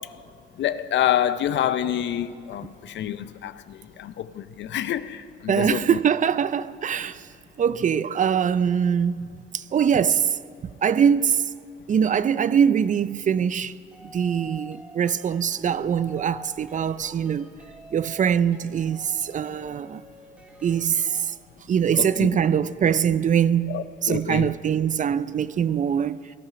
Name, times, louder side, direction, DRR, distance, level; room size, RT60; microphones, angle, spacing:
voice 1, 0.6-5.9 22.0-22.3 23.7-24.5, left 11 dB, 65° left, 0.5 m, -27 dB
voice 2, 5.5-7.3 7.6-11.4 11.9-13.7 14.0-17.5 17.9-20.0 20.6-21.3 21.7-26.3, right 8 dB, 40° right, 0.4 m, -23 dB
sound 1, 13.9-21.3, left 1 dB, 5° right, 2.6 m, -47 dB
18.5 x 13.0 x 5.7 m
cardioid pair, 90°, 20 cm